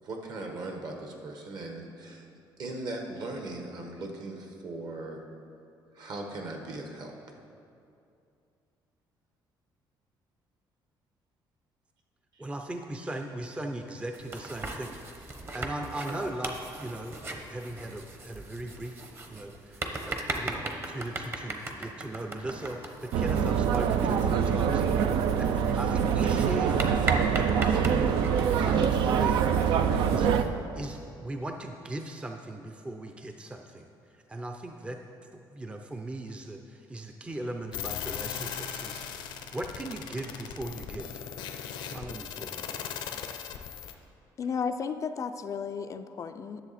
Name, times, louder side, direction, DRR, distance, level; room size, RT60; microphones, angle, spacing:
voice 1, 0.0-2.3 2.6-5.2 5.9-7.1, right 2 dB, 55° right, 3 dB, 1.3 m, -38 dB
voice 2, 12.4-14.9 15.5-19.0 19.3-19.8 20.1-24.8 25.4-26.8 27.1-28.2 28.6-29.4 30.1-30.3 30.7-33.8 34.3-35.0 35.5-39.0 39.5-41.1 41.8-42.8, right 1 dB, 15° right, 4 dB, 0.5 m, -38 dB
sound 1, 14.1-30.5, right 2 dB, 30° right, 0.9 m, -39 dB
sound 2, 23.1-30.4, right 7 dB, 80° right, 0.4 m, -25 dB
sound 3, 37.7-43.9, left 9 dB, 85° left, 0.7 m, -38 dB
voice 3, 44.4-46.6, left 6 dB, 40° left, 9 dB, 0.4 m, -33 dB
10.5 x 7.0 x 4.2 m, 2.5 s
cardioid pair, 110°, 8 cm